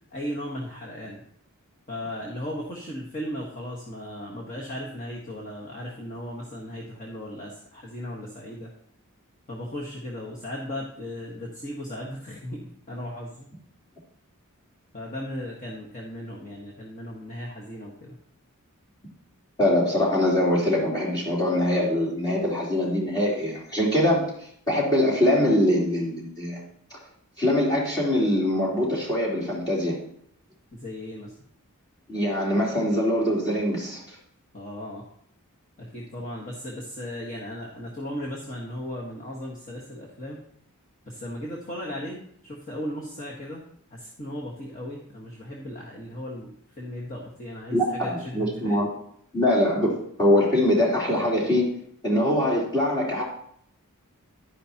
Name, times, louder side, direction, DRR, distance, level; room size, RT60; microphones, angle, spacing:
voice 1, 0.1-1.2 1.9-8.7 9.5-13.5 14.9-18.2 30.7-31.3 34.5-35.0 35.8-40.4 41.1-43.6 43.9-46.5 46.8-48.8, left 1 dB, 35° left, -4 dB, 1.5 m, -36 dB
voice 2, 19.6-24.3 24.7-26.6 26.9-27.0 27.4-30.0 32.1-34.1 47.7-48.9 49.3-51.7 52.0-53.2, left 1 dB, 20° left, -5 dB, 3.4 m, -23 dB
11.5 x 10.5 x 2.9 m, 0.68 s
head